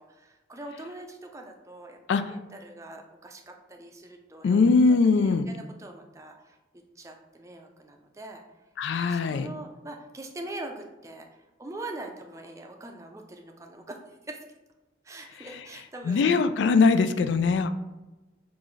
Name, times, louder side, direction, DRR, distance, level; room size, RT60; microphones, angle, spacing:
voice 1, 0.0-4.7 5.2-6.6 7.0-8.4 9.1-11.3 11.6-14.0 14.3-14.4 15.0-16.3, right 2 dB, 15° right, 3 dB, 0.4 m, -42 dB
voice 2, 4.4-5.5 8.8-9.5 16.1-17.7, left 4 dB, 80° left, 10 dB, 0.3 m, -21 dB
6.0 x 2.5 x 3.1 m, 1.1 s
head